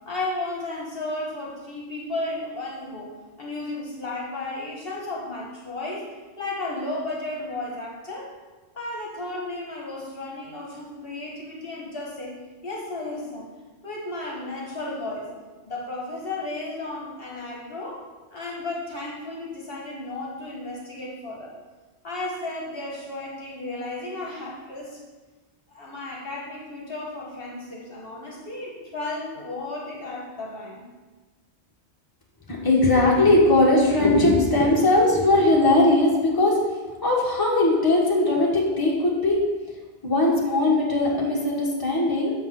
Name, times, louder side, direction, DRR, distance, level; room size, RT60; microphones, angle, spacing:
voice 1, 0.1-8.3 8.7-12.4 12.6-13.5 13.8-15.3 15.6-21.5 22.0-25.0 25.7-30.9, left 2 dB, 55° left, -2 dB, 1.4 m, -34 dB
voice 2, 32.5-36.6 37.0-39.4 40.0-42.3, left 2 dB, 20° left, -3 dB, 1.5 m, -19 dB
6.9 x 5.4 x 6.0 m, 1.3 s
omnidirectional pair, 1.2 m